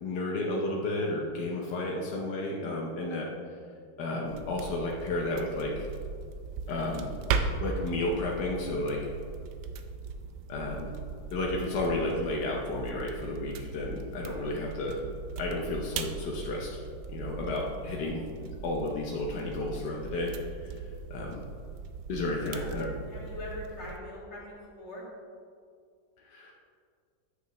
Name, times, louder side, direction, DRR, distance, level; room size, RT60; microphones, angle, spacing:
voice 1, 0.0-3.3 4.0-5.9 6.7-7.1 7.6-9.0 10.5-10.9 11.3-15.0 15.4-16.8 17.1-20.3 20.6-20.7 21.1-21.4 22.1-22.9 26.3-26.5, left 2 dB, 80° left, -2 dB, 1.5 m, -32 dB
sound 1, 4.2-24.0, right 5 dB, 80° right, 1.2 m, -38 dB
voice 2, 22.3-25.1, left 1 dB, 40° left, -5 dB, 2.3 m, -43 dB
9.7 x 8.0 x 3.1 m, 2.2 s
omnidirectional pair, 1.8 m